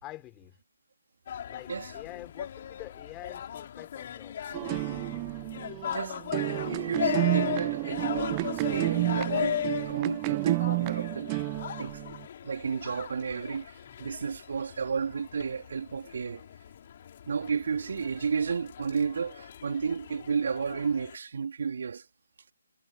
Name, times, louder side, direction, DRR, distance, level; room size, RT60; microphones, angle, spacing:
voice 1, 0.0-0.6 1.5-4.5 13.8-14.1, left 17 dB, 15° left, 4.8 m, -47 dB
sound 1, 1.3-21.2, left 9 dB, 40° left, 5.6 m, -38 dB
sound 2, 4.5-12.2, right 34 dB, 20° right, 0.7 m, -30 dB
voice 2, 5.9-11.3 11.8-12.0 12.4-16.5 17.3-22.0, right 6 dB, 55° right, 3.3 m, -32 dB
figure-of-eight pair, 145°, 0 cm